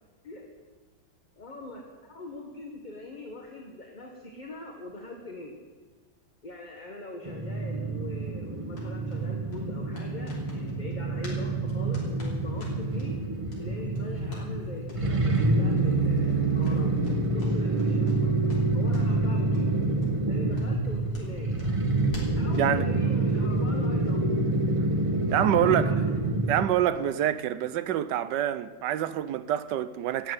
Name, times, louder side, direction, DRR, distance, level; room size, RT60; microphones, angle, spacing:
voice 1, 1.4-5.6 6.4-13.1 13.6-17.0 17.3-18.3 18.7-19.7 20.3-21.6 22.4-24.5 25.5-26.1, left 2 dB, 25° left, 1.3 m, -42 dB
sound 1, 7.2-26.7, right 2 dB, 25° right, 0.8 m, -27 dB
sound 2, 8.7-11.4 11.7-13.1 13.5-13.6 13.9-14.5 14.8-15.0 15.3-15.4 15.7-15.9 16.2-18.2 18.5-19.2 19.5-19.7 20.0-20.1 20.5-22.7, left 2 dB, 70° left, 4.0 m, -46 dB
voice 2, 25.3-25.9 26.5-30.3, right 11 dB, 70° right, 1.2 m, -26 dB
13.0 x 8.8 x 9.5 m
omnidirectional pair, 2.1 m